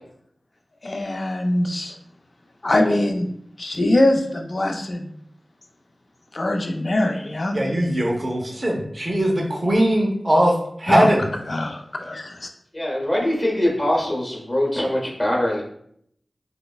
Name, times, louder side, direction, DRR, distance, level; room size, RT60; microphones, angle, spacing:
voice 1, 0.8-2.0 2.6-3.3 3.6-5.1 6.3-7.6 10.9-11.1 11.5-12.5, left 1 dB, 55° left, 4 dB, 0.3 m, -22 dB
voice 2, 7.5-11.3, right 1 dB, 40° right, 0 dB, 0.5 m, -20 dB
voice 3, 12.7-15.6, left 1 dB, 35° left, -2 dB, 0.9 m, -22 dB
3.1 x 2.0 x 2.2 m, 0.69 s
wide cardioid pair, 60°, 0 cm